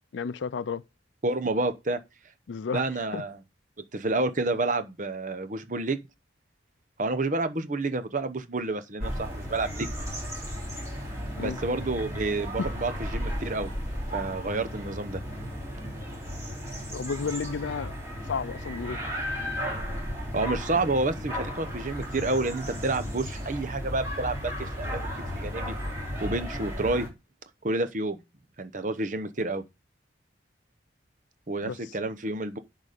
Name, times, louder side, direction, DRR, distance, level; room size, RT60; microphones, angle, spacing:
voice 1, 0.1-0.8 2.5-2.8 3.1-3.2 11.4-11.6 16.9-18.0 18.3-19.0 31.7-31.8, left 5 dB, 80° left, 0.4 m, -32 dB
voice 2, 1.2-2.0 2.7-3.4 3.9-6.0 7.0-9.9 11.4-13.7 14.1-15.2 20.3-24.5 24.8-25.7 26.2-27.1 27.6-28.2 28.6-29.6 31.5-32.6, right 2 dB, 45° right, 0.9 m, -29 dB
sound 1, 9.0-27.1, equal, 15° right, 3.4 m, -34 dB
10.5 x 4.1 x 5.1 m
head